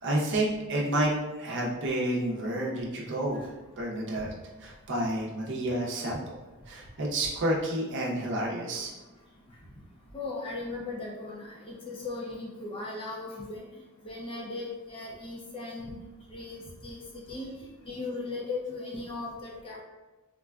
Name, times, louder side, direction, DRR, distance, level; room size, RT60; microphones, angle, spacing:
voice 1, 0.0-1.1 1.4-3.4 3.8-4.3 4.6-6.3 6.7-8.9, right 1 dB, 55° right, -3 dB, 0.6 m, -30 dB
voice 2, 10.1-13.6 14.0-16.0 16.3-19.8, left 3 dB, 25° left, -3 dB, 0.5 m, -38 dB
3.7 x 2.2 x 2.3 m, 1.1 s
head